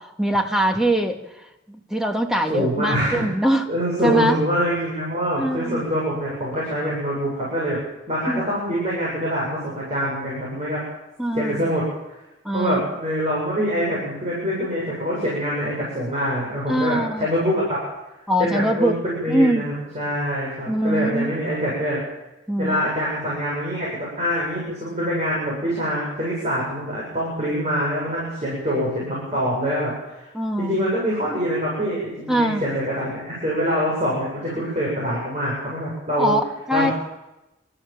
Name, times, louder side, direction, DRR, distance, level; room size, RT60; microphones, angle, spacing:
voice 1, 0.0-3.6 4.0-4.4 5.4-5.8 8.3-8.4 11.2-11.7 12.4-12.8 16.7-17.3 18.3-18.9 19.3-19.6 20.7-21.3 22.5-22.8 30.3-30.8 32.3-32.6 36.2-36.9, right 1 dB, 5° right, 3 dB, 2.1 m, -22 dB
voice 2, 2.5-3.2 3.7-7.8 8.1-10.8 11.3-11.9 12.5-17.8 18.4-22.0 22.6-30.3 30.6-36.3 36.7-36.9, equal, 35° right, -6 dB, 7.6 m, -25 dB
29.5 x 14.0 x 7.5 m, 0.97 s
head